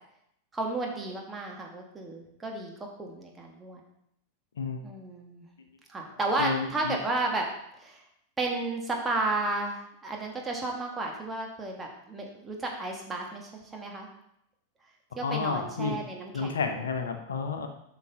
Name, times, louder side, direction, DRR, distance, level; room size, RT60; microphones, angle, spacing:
voice 1, 0.5-2.7 3.0-3.8 4.8-5.5 5.9-7.5 7.8-8.0 8.4-14.1 15.2-16.5, right 2 dB, 15° right, 0 dB, 1.7 m, -32 dB
voice 2, 6.4-7.0 15.2-16.0 16.3-17.7, left 5 dB, 65° left, 6 dB, 0.9 m, -30 dB
8.3 x 5.8 x 4.1 m, 0.77 s
figure-of-eight pair, 90°, 0 cm